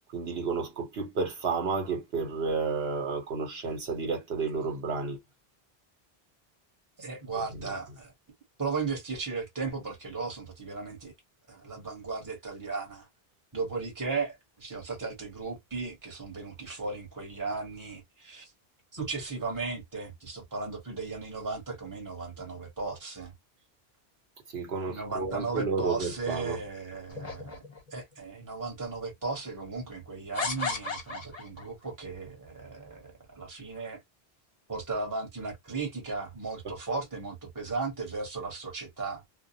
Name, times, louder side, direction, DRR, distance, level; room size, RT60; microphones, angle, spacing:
voice 1, 0.1-5.2 24.5-26.6 36.6-36.7, right 4 dB, 75° right, 1.1 m, -31 dB
voice 2, 7.0-8.1 8.6-11.1 11.5-13.1 13.5-18.5 18.9-23.3 24.8-27.6 27.9-34.0 34.7-39.2, right 4 dB, 20° right, 1.0 m, -36 dB
sound 1, 27.1-28.0 28.8-28.9 30.3-31.7, left 3 dB, 45° left, 0.7 m, -34 dB
2.3 x 2.0 x 2.7 m
omnidirectional pair, 1.0 m